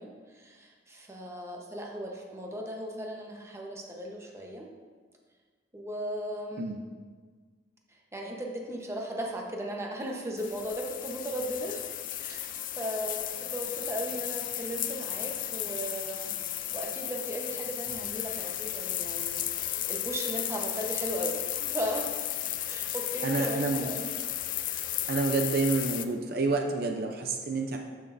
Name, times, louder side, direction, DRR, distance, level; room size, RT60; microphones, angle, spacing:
voice 1, 0.0-4.7 5.7-6.7 8.1-11.8 12.2-16.3 16.7-19.4 19.9-22.1 22.7-24.1, equal, 15° right, 0 dB, 1.0 m, -36 dB
sound 1, 10.4-26.0, left 12 dB, 50° left, 0.4 m, -34 dB
voice 2, 23.2-23.9 25.1-27.8, right 3 dB, 60° right, 3 dB, 0.6 m, -28 dB
14.0 x 6.3 x 2.7 m, 1.5 s
head